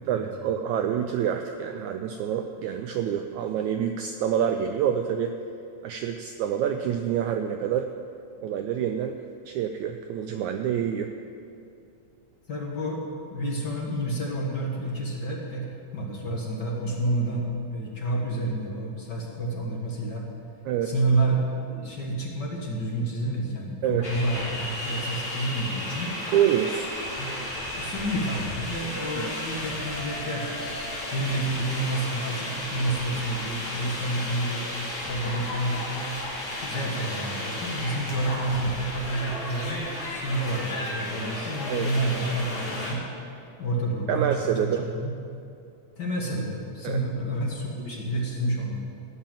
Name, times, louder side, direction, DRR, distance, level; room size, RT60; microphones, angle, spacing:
voice 1, 0.1-5.3 5.8-7.9 8.4-9.2 9.5-11.1 20.6-20.9 23.8-24.2 26.3-26.8 29.2-29.3 41.7-41.9 44.1-44.9 46.8-47.0, right 9 dB, 85° right, 6 dB, 1.7 m, -27 dB
voice 2, 12.5-13.0 13.3-15.7 15.9-20.3 20.8-26.2 26.7-26.8 27.2-27.3 27.7-30.5 31.1-34.7 35.0-36.2 36.6-43.0 43.6-45.2 46.0-48.8, right 1 dB, 50° left, -2 dB, 1.3 m, -29 dB
sound 1, 24.0-42.9, left 1 dB, 20° left, 2.3 m, -33 dB
17.0 x 5.7 x 8.8 m, 2.6 s
omnidirectional pair, 4.0 m